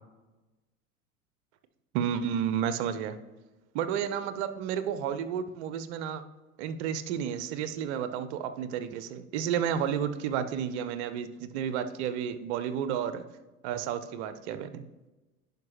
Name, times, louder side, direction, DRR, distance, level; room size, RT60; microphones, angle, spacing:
voice 1, 1.9-3.2 3.7-6.2 6.6-13.2 13.6-14.8, right 8 dB, 50° right, 11 dB, 0.7 m, -31 dB
10.5 x 5.1 x 3.1 m, 1.1 s
figure-of-eight pair, 80°, 43 cm